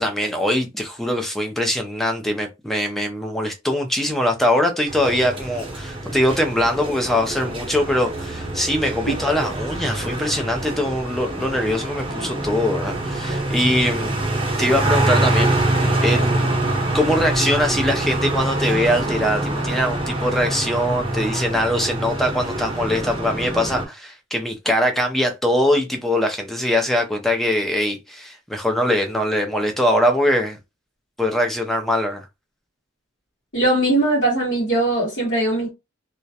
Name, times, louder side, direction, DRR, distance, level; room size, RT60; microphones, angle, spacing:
voice 1, 0.0-14.1 14.6-16.5 16.9-30.6 31.2-32.2, left 1 dB, ahead, 0.3 m, -22 dB
sound 1, 4.9-23.8, right 1 dB, 25° right, 0.7 m, -25 dB
voice 2, 33.5-35.7, right 2 dB, 60° left, 1.0 m, -20 dB
2.3 x 2.0 x 2.7 m
head